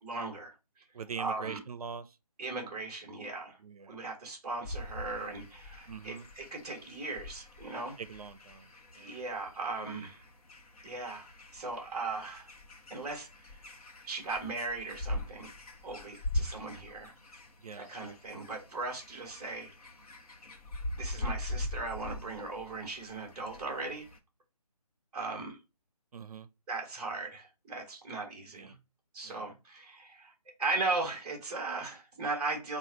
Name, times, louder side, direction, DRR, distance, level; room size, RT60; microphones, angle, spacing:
voice 1, 0.0-0.8 1.2-1.6 2.4-3.6 3.9-7.9 9.0-10.2 10.8-11.3 11.5-12.5 12.9-13.6 14.0-15.5 15.8-17.1 17.8-19.7 21.0-24.1 25.1-25.6 26.7-28.7 29.1-30.3 30.6-32.8, right 3 dB, 5° right, 0.6 m, -37 dB
voice 2, 0.9-2.2 3.6-4.0 5.9-6.3 8.0-8.7 8.9-9.2 17.6-17.9 26.1-26.5 28.5-28.7 29.2-29.4, right 6 dB, 70° right, 0.4 m, -43 dB
sound 1, 4.6-24.2, left 1 dB, 65° left, 1.0 m, -42 dB
3.8 x 2.4 x 4.4 m
figure-of-eight pair, 155°, 20 cm